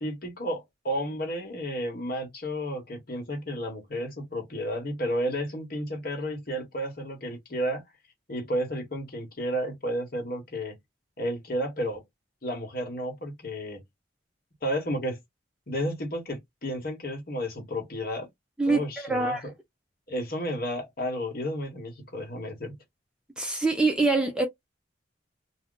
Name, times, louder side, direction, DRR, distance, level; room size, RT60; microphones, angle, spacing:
voice 1, 0.0-7.8 8.3-10.8 11.2-12.0 12.4-13.8 14.6-15.2 15.7-18.3 18.7-19.5 20.1-22.7, equal, 50° left, 1.1 m, -32 dB
voice 2, 18.6-19.4 23.4-24.5, right 3 dB, 5° right, 0.4 m, -25 dB
2.4 x 2.2 x 3.7 m
head